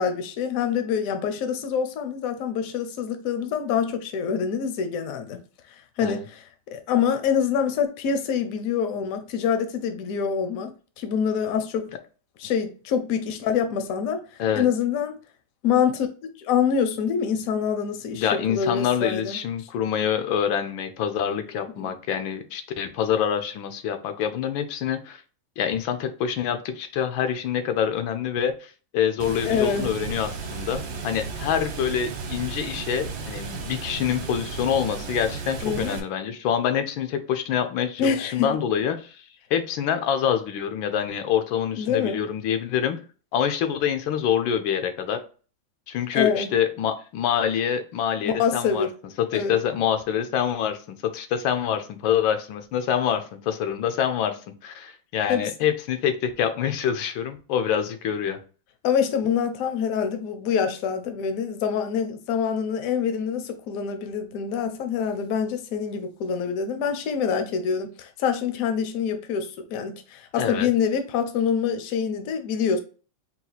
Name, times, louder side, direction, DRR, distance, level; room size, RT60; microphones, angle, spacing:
voice 1, 0.0-5.4 6.0-11.9 12.4-14.2 14.5-15.2 15.6-16.1 16.4-19.4 21.8-21.9 29.4-29.9 35.6-36.0 38.0-38.5 41.7-42.2 46.1-46.5 48.2-48.9 49.3-49.6 55.3-55.5 58.8-72.8, left 7 dB, 65° left, 0.9 m, -25 dB
voice 2, 18.1-25.2 25.6-39.2 39.5-43.0 43.3-45.2 45.9-48.9 49.2-58.4 70.4-70.7, left 8 dB, 90° left, 1.4 m, -26 dB
Water, 29.2-36.0, right 4 dB, 65° right, 1.4 m, -34 dB
4.2 x 2.4 x 3.9 m
omnidirectional pair, 2.1 m